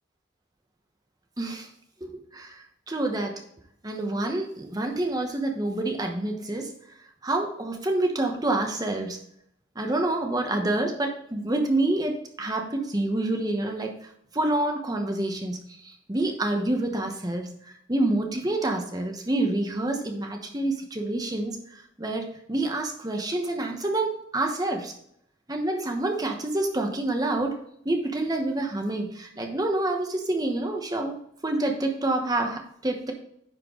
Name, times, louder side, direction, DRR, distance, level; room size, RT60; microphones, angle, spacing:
voice 1, 1.4-1.7 2.0-3.4 3.8-6.7 7.2-9.2 9.7-24.9 25.5-31.1 31.4-33.1, right 2 dB, 20° right, 3 dB, 1.0 m, -28 dB
9.9 x 4.5 x 3.8 m, 0.71 s
head